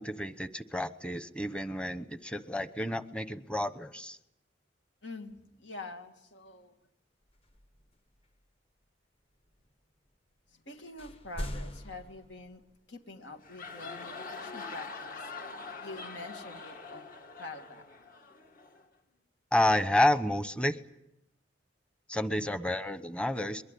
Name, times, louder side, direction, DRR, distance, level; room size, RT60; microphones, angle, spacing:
voice 1, 0.0-4.2 19.5-20.8 22.1-23.6, left 1 dB, 5° left, 11 dB, 1.0 m, -30 dB
voice 2, 5.0-6.8 10.5-12.6 12.9-15.3 15.8-17.1 17.4-17.8 22.4-22.5, left 2 dB, 80° left, 4 dB, 2.5 m, -46 dB
sound 1, 7.2-8.5 9.4-10.2 10.4-10.5 10.8-12.8, equal, 30° left, 1.2 m, -42 dB
sound 2, 13.3-18.9, left 4 dB, 50° left, 2.0 m, -44 dB
22.5 x 22.0 x 8.6 m, 0.84 s
head